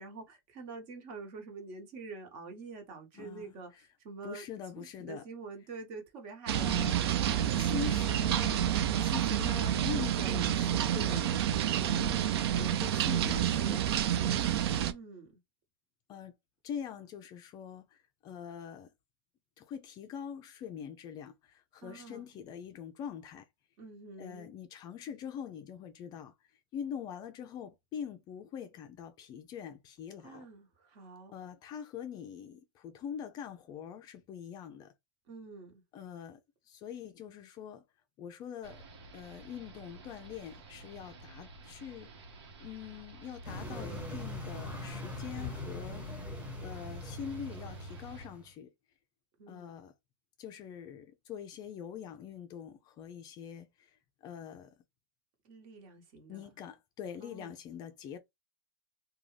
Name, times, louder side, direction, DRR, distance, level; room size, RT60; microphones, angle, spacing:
voice 1, 0.0-4.4 4.8-6.7 7.0-8.1 14.7-15.4 21.8-22.3 23.8-24.5 30.2-31.3 35.3-35.8 49.4-49.7 55.4-56.5 57.2-57.5, right 4 dB, 45° right, 1.2 m, -47 dB
voice 2, 3.1-3.5 4.2-5.2 6.5-7.1 7.6-8.7 9.0-11.4 11.8-12.3 12.6-14.5 16.1-16.3 16.6-18.9 19.6-23.5 24.2-30.5 31.3-34.9 35.9-36.4 36.7-37.8 38.2-38.8 39.1-42.3 42.6-46.2 46.6-48.7 49.5-49.9 50.4-53.9 54.2-54.7 56.3-58.2, left 8 dB, 30° left, 0.4 m, -44 dB
sound 1, 6.5-14.9, right 10 dB, 70° right, 0.5 m, -29 dB
sound 2, 38.6-48.3, equal, 90° right, 1.0 m, -49 dB
sound 3, 43.4-48.5, left 1 dB, 10° right, 1.2 m, -42 dB
2.5 x 2.3 x 3.2 m
supercardioid pair, 140°, 14 cm